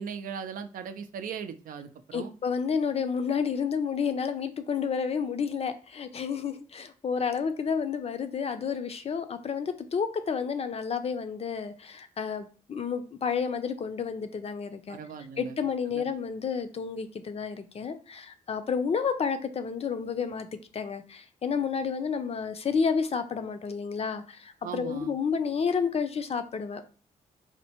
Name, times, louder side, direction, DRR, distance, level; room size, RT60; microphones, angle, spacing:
voice 1, 0.0-2.3 14.9-15.6 15.9-16.0 24.6-25.1, right 7 dB, 70° right, 10 dB, 0.4 m, -38 dB
voice 2, 2.1-15.0 15.4-20.5 20.7-26.8, left 6 dB, 45° left, 9 dB, 0.5 m, -30 dB
4.2 x 2.1 x 2.8 m, 0.38 s
supercardioid pair, 60°, 15 cm